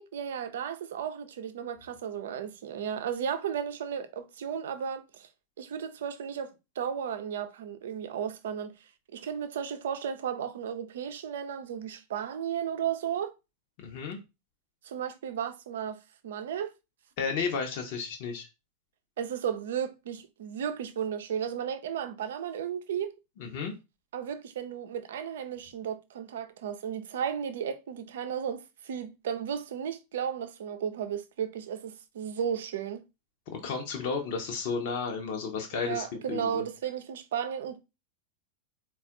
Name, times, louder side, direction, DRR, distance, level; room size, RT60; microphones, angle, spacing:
voice 1, 0.0-5.3 5.6-8.7 9.1-13.3 14.8-16.0 16.2-16.7 19.2-23.2 24.1-33.0 35.8-37.8, right 8 dB, 60° right, 0.6 m, -34 dB
voice 2, 13.8-14.2 17.2-18.5 23.4-23.7 33.5-36.6, left 5 dB, 45° left, 0.9 m, -33 dB
4.2 x 2.4 x 3.7 m
figure-of-eight pair, 90°, 0 cm